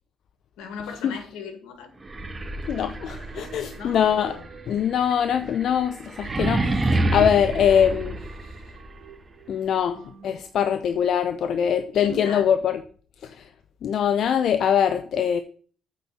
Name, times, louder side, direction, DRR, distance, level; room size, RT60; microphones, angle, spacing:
voice 1, 0.6-1.9 3.8-4.5 11.9-12.5, left 5 dB, 90° left, 1.9 m, -38 dB
sound 1, 2.0-8.9, right 2 dB, 30° right, 1.3 m, -28 dB
voice 2, 2.7-4.4 4.7-8.2 9.5-12.8 13.2-13.5 13.8-15.4, left 8 dB, 70° left, 0.6 m, -23 dB
sound 2, 3.3-6.7 7.1-7.2 7.5-10.4, right 7 dB, 75° right, 3.0 m, -49 dB
9.0 x 4.3 x 7.2 m
supercardioid pair, 75°, 0 cm